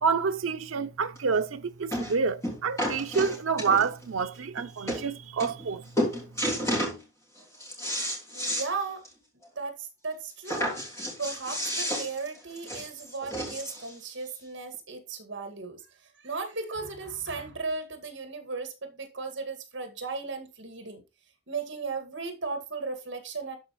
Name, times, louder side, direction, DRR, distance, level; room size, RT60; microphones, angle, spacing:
voice 1, 0.0-5.8, right 5 dB, 85° right, 0.5 m, -28 dB
sound 1, 1.2-1.3 1.9-2.1 2.4-4.0 4.6-4.7 4.9-5.0 5.4-5.7 6.0-7.0 7.4-8.7 9.0-9.1 9.5-9.6 10.4-13.9 14.7-14.8, equal, 15° left, 3.1 m, -31 dB
voice 2, 8.3-9.0 9.6-10.7 11.2-15.8 16.2-21.0 21.5-23.6, right 4 dB, 65° right, 1.9 m, -36 dB
12.5 x 4.8 x 3.1 m
head